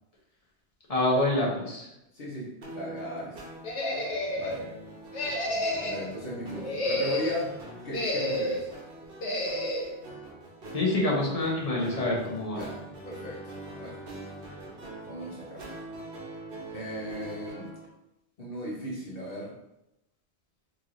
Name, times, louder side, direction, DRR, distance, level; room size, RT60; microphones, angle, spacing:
voice 1, 0.9-1.9 10.7-12.6, left 1 dB, 35° left, -3 dB, 0.9 m, -26 dB
voice 2, 2.1-3.4 4.3-4.7 5.8-7.6 7.8-8.7 12.5-14.0 15.0-15.7 16.7-17.7 18.4-19.6, equal, 55° left, -6 dB, 1.1 m, -37 dB
sound 1, 2.6-17.9, right 2 dB, 55° right, 1.0 m, -44 dB
sound 2, 3.6-4.6 5.1-6.1 6.6-7.4 7.9-8.7 9.2-9.9, left 1 dB, 90° left, 1.1 m, -30 dB
4.5 x 3.0 x 2.6 m, 0.86 s
omnidirectional pair, 1.2 m